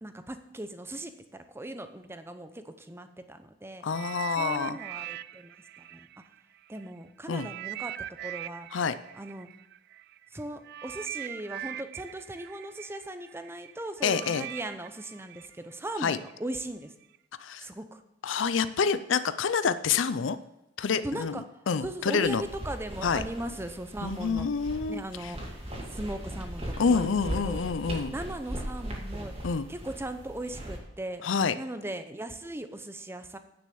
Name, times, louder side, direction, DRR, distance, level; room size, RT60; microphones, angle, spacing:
voice 1, 0.0-3.8 4.4-6.1 6.7-7.9 8.2-8.7 9.2-9.5 10.3-16.9 17.6-18.0 21.0-21.4 21.8-24.5 24.9-25.4 25.9-27.6 28.1-29.3 29.7-31.2 31.6-33.4, right 1 dB, 15° right, 9 dB, 0.7 m, -38 dB
voice 2, 3.8-4.8 7.3-7.5 8.7-8.9 14.0-14.4 16.0-16.2 17.4-17.7 18.2-20.4 20.8-22.4 23.0-23.2 24.0-25.3 26.8-28.1 29.4-29.7 31.2-31.5, left 5 dB, 75° left, 13 dB, 0.5 m, -27 dB
sound 1, 3.9-6.8 7.3-16.3 17.0-17.2, right 13 dB, 55° right, 0.3 m, -41 dB
Clothing rustles, 22.2-30.8, right 1 dB, 30° right, 2.2 m, -38 dB
9.9 x 6.3 x 7.0 m, 0.88 s
head